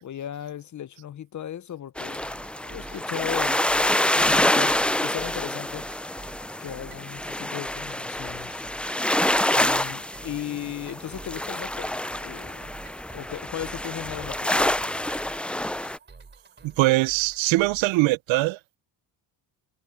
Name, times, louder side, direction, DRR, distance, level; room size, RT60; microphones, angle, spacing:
voice 1, 0.0-4.7 5.0-5.8 6.6-8.7 9.4-12.7 13.1-15.0, left 11 dB, 40° left, 0.7 m, -37 dB
sound 1, 2.0-16.0, left 1 dB, 5° left, 0.3 m, -27 dB
sound 2, 2.2-18.1, right 4 dB, 25° right, 3.6 m, -49 dB
voice 2, 16.6-18.8, right 20 dB, 85° right, 0.7 m, -22 dB
cardioid pair, 90°, 45 cm